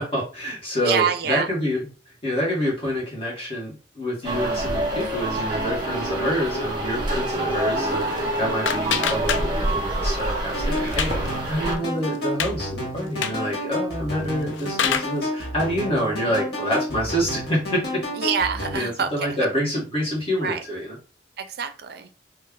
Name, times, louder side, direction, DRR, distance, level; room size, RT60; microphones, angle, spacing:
voice 1, 0.0-1.9 2.2-17.8 18.7-21.0, equal, 30° left, -4 dB, 1.5 m, -27 dB
voice 2, 0.8-1.5 18.2-19.4 20.4-20.6 21.4-22.1, right 7 dB, 55° right, 9 dB, 0.4 m, -26 dB
sound 1, 4.2-11.8, right 1 dB, 25° right, 1.0 m, -26 dB
sound 2, 7.9-9.9 10.2-11.3 11.7-11.8 12.1-12.5 13.1-13.5 14.2-15.2, left 7 dB, 85° left, 0.4 m, -27 dB
sound 3, 10.5-18.8, left 1 dB, 60° left, 1.4 m, -30 dB
3.2 x 2.3 x 3.6 m, 0.35 s
head